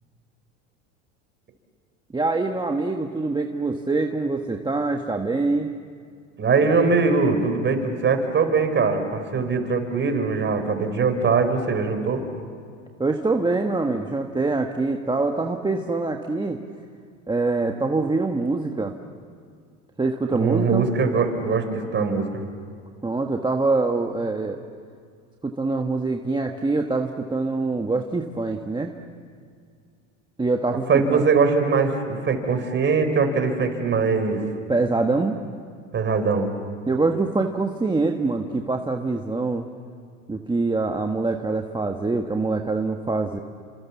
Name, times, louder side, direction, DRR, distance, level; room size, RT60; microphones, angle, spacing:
voice 1, 2.1-5.7 13.0-16.6 17.3-18.9 20.0-20.8 23.0-24.6 25.4-29.0 30.4-31.2 34.7-35.4 36.9-39.7 40.3-43.4, right 3 dB, 10° right, 3 dB, 1.5 m, -24 dB
voice 2, 6.4-12.3 20.3-22.4 30.9-34.4 35.9-36.5, right 4 dB, 30° right, 7 dB, 4.5 m, -22 dB
29.5 x 26.0 x 7.3 m, 2.2 s
hypercardioid pair, 95°, 37 cm